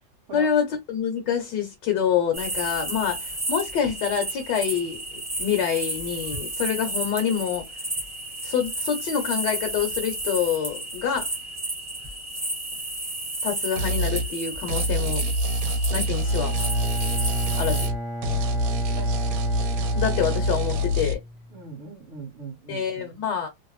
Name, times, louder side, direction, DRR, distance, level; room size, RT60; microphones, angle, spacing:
voice 1, 0.3-7.6 8.4-11.3 13.4-15.2 15.9-16.5 17.6-17.9 19.9-21.2 22.7-23.5, left 8 dB, 70° left, 1.2 m, -26 dB
sound 1, 2.3-17.9, right 1 dB, 10° right, 0.7 m, -32 dB
sound 2, 13.8-14.3 14.7-18.0 18.2-21.1, equal, 70° right, 1.2 m, -25 dB
Bowed string instrument, 16.2-21.7, equal, 25° left, 0.7 m, -34 dB
voice 2, 19.0-19.3 21.5-23.2, right 3 dB, 45° right, 1.3 m, -40 dB
3.1 x 2.1 x 3.0 m
omnidirectional pair, 2.2 m